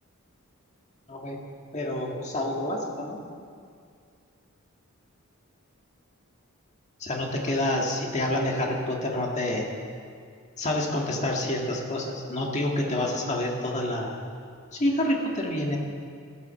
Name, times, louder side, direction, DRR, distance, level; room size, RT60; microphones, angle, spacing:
voice 1, 1.1-1.4 1.7-3.2 7.0-9.7 10.6-14.2 14.7-15.8, left 1 dB, 35° left, 0 dB, 1.8 m, -28 dB
13.5 x 10.0 x 7.0 m, 2.2 s
head